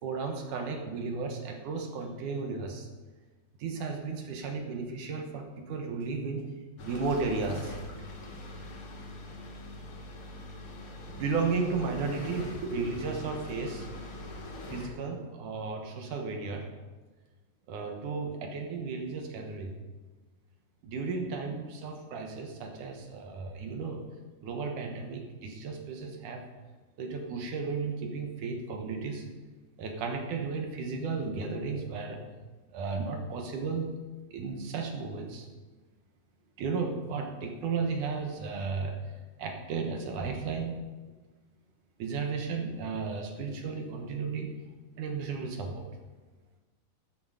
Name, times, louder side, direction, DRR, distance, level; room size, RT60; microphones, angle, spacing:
voice 1, 0.0-2.9 3.6-6.5 6.9-7.8 11.1-13.9 14.7-16.7 17.7-19.8 20.8-24.0 24.4-26.4 27.0-29.2 29.8-32.2 32.7-34.0 34.3-35.5 36.6-39.0 39.4-40.7 42.0-44.5 45.0-45.8, right 4 dB, 65° right, 3 dB, 2.3 m, -34 dB
sound 1, 6.8-14.9, left 1 dB, 45° left, 1.9 m, -42 dB
12.5 x 9.6 x 4.9 m, 1.3 s
omnidirectional pair, 4.6 m